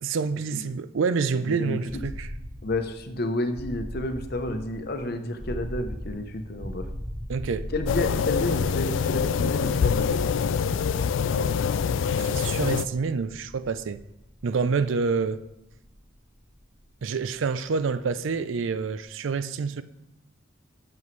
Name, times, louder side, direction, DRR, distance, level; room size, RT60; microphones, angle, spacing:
voice 1, 0.0-2.3 7.3-7.7 12.2-14.0 14.4-15.4 17.0-19.8, right 5 dB, 70° right, 0.4 m, -27 dB
voice 2, 1.4-2.0 2.6-6.9 7.7-10.2, left 1 dB, 50° left, 0.8 m, -30 dB
sound 1, 1.9-17.7, equal, 20° right, 3.1 m, -40 dB
sound 2, 7.9-12.8, left 6 dB, 65° left, 0.3 m, -25 dB
11.0 x 7.0 x 3.2 m
head